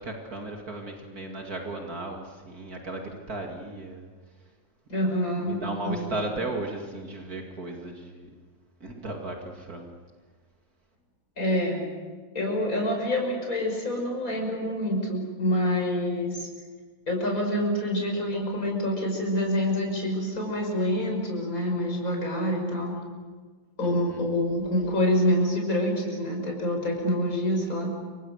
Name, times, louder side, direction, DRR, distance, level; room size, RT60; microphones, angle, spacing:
voice 1, 0.0-4.1 5.4-8.3 8.8-9.9 23.8-24.2, right 2 dB, 65° right, 1 dB, 2.9 m, -35 dB
voice 2, 4.9-6.2 11.4-11.8 12.3-16.5 17.1-23.0 23.8-27.9, left 1 dB, 60° left, 1 dB, 6.2 m, -27 dB
28.5 x 25.5 x 6.5 m, 1.4 s
omnidirectional pair, 1.7 m